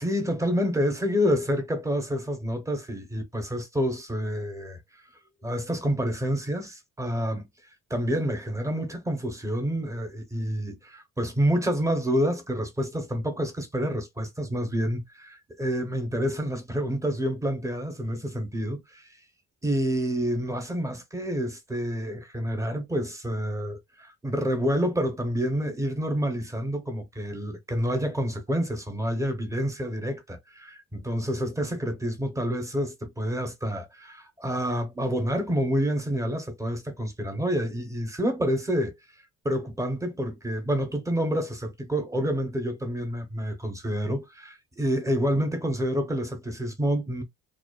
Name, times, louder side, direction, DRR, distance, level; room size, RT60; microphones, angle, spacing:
voice 1, 0.0-4.8 5.4-7.5 7.9-19.1 19.6-38.9 39.4-47.2, equal, 10° right, 0.8 m, -28 dB
2.3 x 2.3 x 2.3 m
cardioid pair, 90°, 30 cm